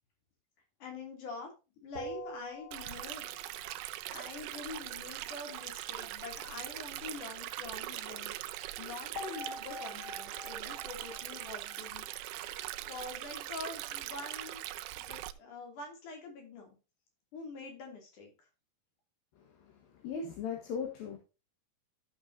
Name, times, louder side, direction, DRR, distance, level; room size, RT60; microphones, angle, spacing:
voice 1, 0.8-1.5 1.8-3.3 4.1-12.0 12.3-14.6 15.0-16.8 17.3-18.3, left 3 dB, 60° left, 2 dB, 4.3 m, -45 dB
sound 1, 1.9-3.5 9.2-12.5, left 1 dB, 35° left, 2.0 m, -45 dB
Stream, 2.7-15.3, right 15 dB, 85° right, 2.5 m, -41 dB
voice 2, 20.0-21.2, left 6 dB, 75° left, 2 dB, 3.2 m, -37 dB
13.5 x 6.7 x 2.7 m, 0.30 s
omnidirectional pair, 4.2 m